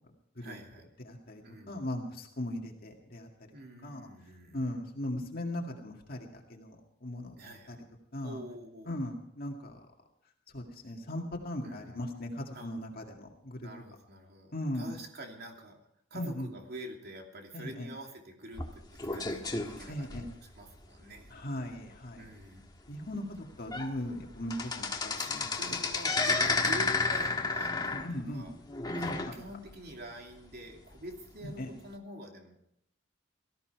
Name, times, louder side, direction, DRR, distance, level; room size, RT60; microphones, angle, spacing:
voice 1, 0.4-0.9 1.4-1.9 3.5-4.6 7.4-7.8 8.2-8.9 11.6-12.1 12.5-12.7 13.6-15.8 16.1-21.3 21.6-21.7 22.2-22.7 25.1-28.0 28.3-28.5 28.9-32.6, right 1 dB, 55° right, 2 dB, 2.8 m, -46 dB
voice 2, 1.0-3.3 3.8-4.0 4.5-7.8 8.1-8.4 8.9-9.9 10.5-13.7 14.5-14.9 16.1-16.5 17.5-17.9 19.9-20.3 21.3-22.3 22.9-25.8 27.9-28.5 29.0-29.3 31.4-31.7, left 1 dB, 50° left, 1 dB, 2.0 m, -38 dB
sound 1, 18.6-20.8 21.3-21.4 21.8-21.9 22.4-22.5 23.1-23.2 23.5-23.9 24.2-29.7 30.1-30.2 31.0-31.1, left 3 dB, 20° left, 1.5 m, -32 dB
18.5 x 14.0 x 4.6 m, 0.74 s
head